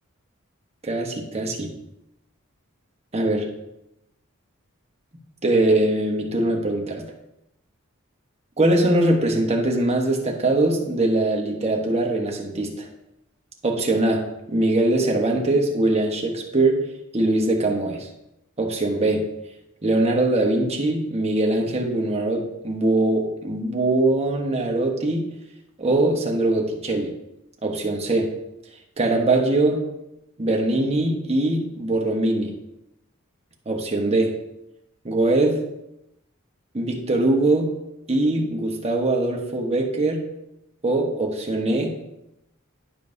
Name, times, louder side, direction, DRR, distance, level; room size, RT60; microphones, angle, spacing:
voice 1, 0.8-1.7 3.1-3.5 5.4-7.0 8.6-12.9 13.6-16.9 17.1-18.1 18.6-19.3 19.8-25.3 25.8-27.2 27.6-28.4 29.0-29.8 30.4-32.6 33.7-34.4 35.0-35.6 36.7-37.7 38.1-40.3 40.8-42.0, right 2 dB, 30° right, 1 dB, 1.2 m, -22 dB
11.0 x 5.3 x 2.7 m, 0.85 s
head